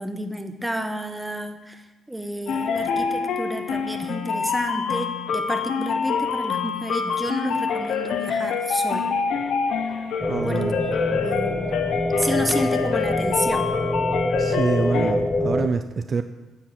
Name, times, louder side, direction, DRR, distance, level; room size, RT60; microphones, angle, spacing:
voice 1, 0.0-9.1 10.4-11.7 12.2-13.7, equal, 5° right, 6 dB, 1.3 m, -30 dB
sound 1, 2.5-15.1, left 6 dB, 75° left, 0.9 m, -26 dB
sound 2, 10.2-15.7, left 1 dB, 10° left, 0.9 m, -25 dB
voice 2, 10.3-10.8 14.4-16.2, right 5 dB, 40° right, 8 dB, 0.6 m, -26 dB
10.0 x 7.4 x 7.5 m, 1.2 s
cardioid pair, 90°, 0 cm